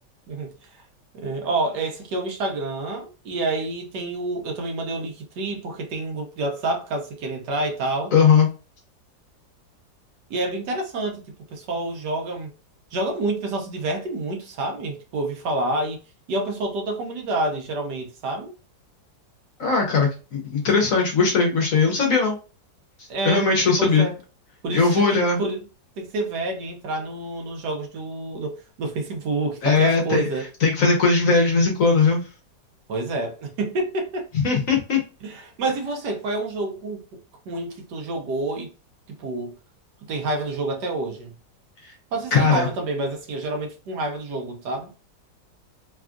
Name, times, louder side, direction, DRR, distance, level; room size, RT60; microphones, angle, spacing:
voice 1, 1.1-8.1 10.3-11.2 11.5-12.5 12.9-16.0 16.3-18.5 23.1-23.5 23.8-24.1 24.6-25.6 26.0-28.5 28.8-30.5 32.9-34.3 35.2-37.0 37.5-38.7 39.2-39.5 40.1-41.3 42.1-44.9, right 2 dB, 70° right, 1.3 m, -28 dB
voice 2, 8.1-8.5 19.6-22.4 23.2-24.1 24.7-25.4 29.6-30.2 30.6-32.2 34.4-35.0 42.3-42.7, left 4 dB, 60° left, 1.0 m, -19 dB
3.4 x 2.3 x 2.4 m
omnidirectional pair, 1.9 m